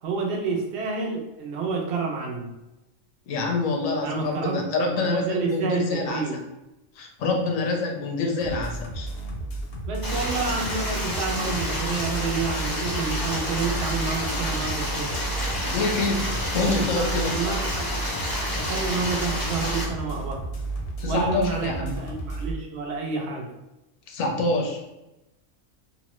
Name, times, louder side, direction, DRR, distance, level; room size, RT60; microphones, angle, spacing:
voice 1, 0.0-2.6 4.0-4.6 4.9-6.4 9.9-15.3 16.5-17.9 18.6-20.4 21.1-23.5, right 4 dB, 60° right, 0 dB, 0.9 m, -29 dB
voice 2, 3.3-6.2 7.0-9.1 15.7-17.4 21.0-21.9 24.1-24.8, left 3 dB, 85° left, 2 dB, 1.0 m, -26 dB
sound 1, 8.4-22.5, right 2 dB, 60° left, 0.7 m, -33 dB
Stream, 10.0-19.8, left 1 dB, 30° left, 0.4 m, -30 dB
3.0 x 2.1 x 2.9 m, 0.96 s
omnidirectional pair, 1.4 m